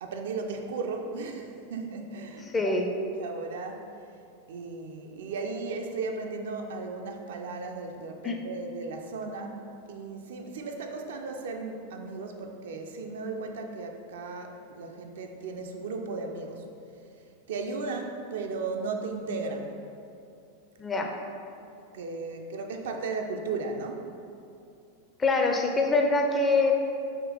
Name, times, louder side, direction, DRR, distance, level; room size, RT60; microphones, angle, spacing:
voice 1, 0.0-2.7 3.1-3.9 4.5-9.6 9.9-16.6 17.5-19.8 21.9-24.0, right 3 dB, 60° right, 3 dB, 0.3 m, -35 dB
voice 2, 2.5-2.9 8.2-8.4 20.8-21.1 25.2-26.7, left 3 dB, 15° left, 2 dB, 0.4 m, -24 dB
3.6 x 2.8 x 4.7 m, 2.6 s
figure-of-eight pair, 90°, 0 cm